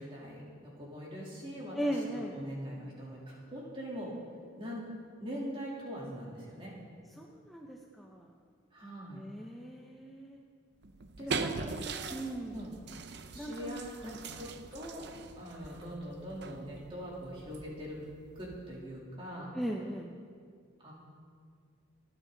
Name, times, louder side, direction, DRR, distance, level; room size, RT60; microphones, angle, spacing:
voice 1, 0.0-4.1 4.5-4.8 5.2-6.7 8.7-9.2 11.2-12.1 12.5-12.7 13.3-15.1 15.4-18.0 18.3-19.5 20.8-20.9, equal, 25° right, -5 dB, 3.3 m, -42 dB
voice 2, 1.8-2.3 7.2-8.3 9.1-10.4 11.3-11.7 12.1-12.6 13.4-13.8 14.0-14.2 19.5-20.1, right 1 dB, ahead, -1 dB, 0.8 m, -38 dB
sound 1, 10.8-18.9, right 4 dB, 55° right, 0.6 m, -42 dB
27.0 x 9.1 x 4.0 m, 2.1 s
head